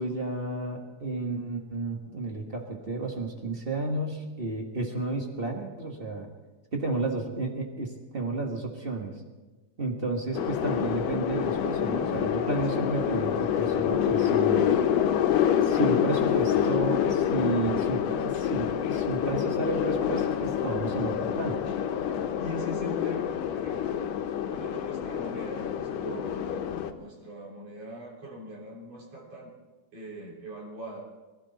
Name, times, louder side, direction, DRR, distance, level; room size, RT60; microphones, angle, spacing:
voice 1, 0.0-6.3 6.7-9.1 9.8-14.7 15.6-21.6, right 2 dB, 35° right, 1 dB, 0.9 m, -32 dB
sound 1, 10.3-26.9, left 9 dB, 90° left, 2.6 m, -27 dB
voice 2, 12.7-13.1 14.5-14.8 22.0-24.0 24.5-29.5 29.9-31.0, right 1 dB, 50° right, -3 dB, 4.4 m, -42 dB
24.0 x 13.0 x 4.1 m, 1.2 s
omnidirectional pair, 3.7 m